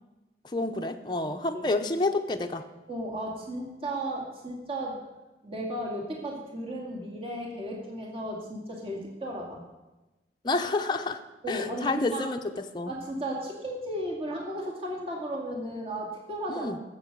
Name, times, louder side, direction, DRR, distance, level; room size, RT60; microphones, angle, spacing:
voice 1, 0.5-2.6 10.4-11.2 11.5-12.9 16.5-16.8, left 2 dB, 25° left, 5 dB, 0.7 m, -29 dB
voice 2, 2.9-5.1 5.4-9.6 11.4-12.3 12.9-16.7, right 1 dB, 35° right, -1 dB, 2.3 m, -35 dB
14.0 x 8.0 x 6.7 m, 1.1 s
head